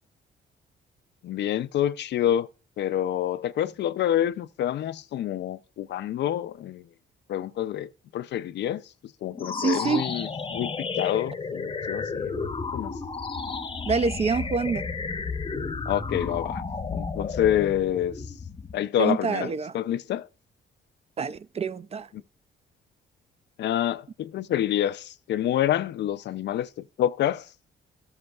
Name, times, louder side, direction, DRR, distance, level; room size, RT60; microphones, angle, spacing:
voice 1, 1.2-2.5 2.8-6.8 7.3-8.8 9.2-12.9 15.9-16.6 16.9-18.1 18.7-20.3 23.6-26.7 27.0-27.5, left 11 dB, 65° left, 0.4 m, -27 dB
sound 1, 9.3-18.8, left 4 dB, 25° left, 0.7 m, -32 dB
voice 2, 9.6-10.0 13.9-14.9 19.0-19.7 21.2-22.1, right 5 dB, 30° right, 0.4 m, -26 dB
13.0 x 7.8 x 2.3 m
cardioid pair, 90°, 20 cm